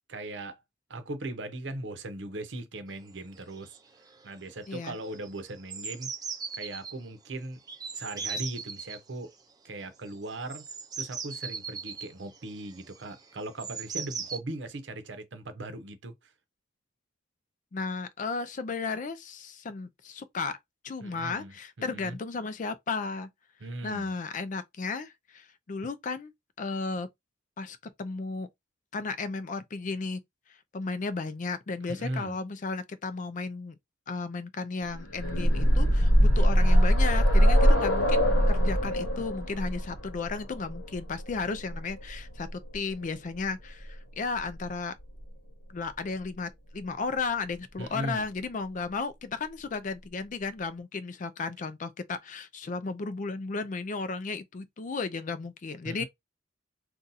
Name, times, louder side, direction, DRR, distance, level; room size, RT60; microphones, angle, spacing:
voice 1, 0.1-0.6 0.9-3.8 4.2-6.1 6.6-7.6 7.9-9.3 9.6-10.6 11.0-16.1 21.0-21.5 21.8-22.2 23.6-24.1 31.9-32.4 36.4-36.8 47.8-48.3 55.8-56.0, right 2 dB, 60° right, 0.7 m, -38 dB
sound 1, 3.1-3.2 3.4-3.8 4.1-4.4 4.6-6.9 7.7-9.0 10.1-14.4, right 5 dB, 20° right, 0.5 m, -38 dB
voice 2, 4.7-5.0 17.7-20.6 20.8-23.3 23.8-26.3 26.6-27.1 27.6-28.5 28.9-30.2 30.7-33.7 34.1-44.9 45.7-56.0, left 4 dB, 40° left, 0.4 m, -34 dB
sound 2, 34.9-42.7 43.9-44.0 44.4-44.5, equal, 80° left, 1.0 m, -23 dB
2.7 x 2.3 x 3.9 m
head